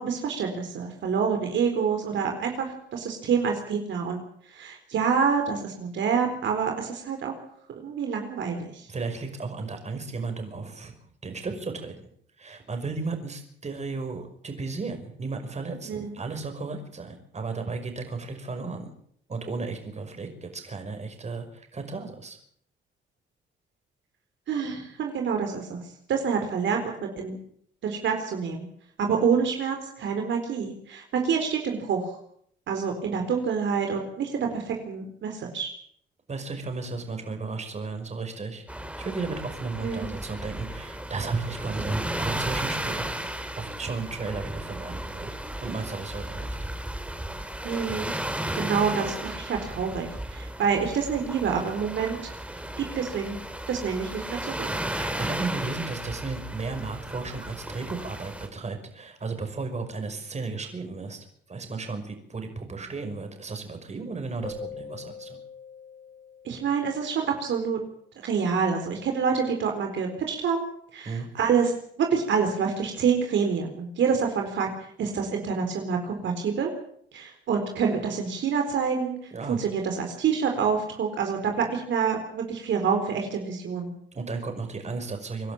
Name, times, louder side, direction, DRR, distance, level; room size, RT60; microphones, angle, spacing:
voice 1, 0.0-4.2 4.5-7.4 7.8-8.8 15.9-16.2 24.5-25.8 26.1-27.4 27.8-28.7 29.0-32.2 32.7-35.7 39.8-40.0 47.6-48.1 48.6-52.3 52.8-53.4 53.7-54.7 66.4-67.8 68.2-70.6 70.9-74.7 75.0-76.7 77.1-83.9, right 6 dB, 70° right, 3 dB, 4.3 m, -27 dB
voice 2, 8.9-10.9 11.2-11.9 12.4-18.9 19.3-22.4 36.3-38.6 39.0-43.3 43.6-45.3 45.6-46.6 54.9-65.4 71.1-71.3 79.3-79.6 84.1-85.5, right 4 dB, 35° right, 5 dB, 5.7 m, -34 dB
sound 1, 38.7-58.5, right 1 dB, 5° right, 3.4 m, -34 dB
Keyboard (musical), 64.4-67.2, left 4 dB, 20° left, 4.3 m, -42 dB
26.0 x 12.0 x 8.9 m, 0.66 s
cardioid pair, 90°, 20 cm